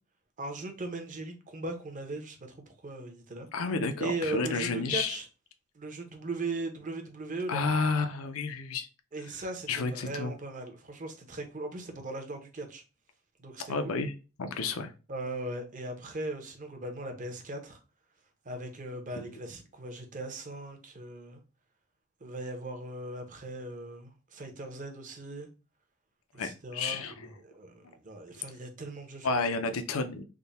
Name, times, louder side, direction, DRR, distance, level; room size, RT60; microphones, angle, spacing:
voice 1, 0.4-3.5 4.0-5.2 5.7-7.6 9.1-12.8 13.4-14.0 15.1-17.8 18.4-21.4 22.2-25.5 26.3-29.5, right 2 dB, 35° right, 0.8 m, -38 dB
voice 2, 3.5-5.2 7.5-8.9 9.7-10.3 13.7-14.1 14.4-14.9 19.2-19.3 26.4-27.3 29.2-30.2, left 4 dB, 75° left, 0.5 m, -31 dB
3.6 x 2.1 x 4.0 m
head